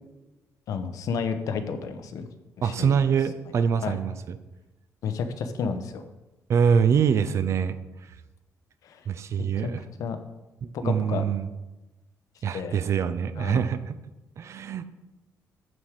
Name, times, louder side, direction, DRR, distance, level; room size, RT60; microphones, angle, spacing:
voice 1, 0.7-2.3 2.6-2.9 3.8-4.0 5.0-6.0 8.8-9.0 9.4-9.7 10.0-10.2 10.7-11.2 12.5-12.8 13.4-13.7, left 6 dB, 70° left, 8 dB, 0.9 m, -31 dB
voice 2, 2.6-4.4 6.5-7.8 9.1-9.8 10.6-11.5 12.4-13.9 14.4-14.8, right 7 dB, 50° right, 12 dB, 0.5 m, -24 dB
9.3 x 4.8 x 7.4 m, 1.1 s
cardioid pair, 140°, 6 cm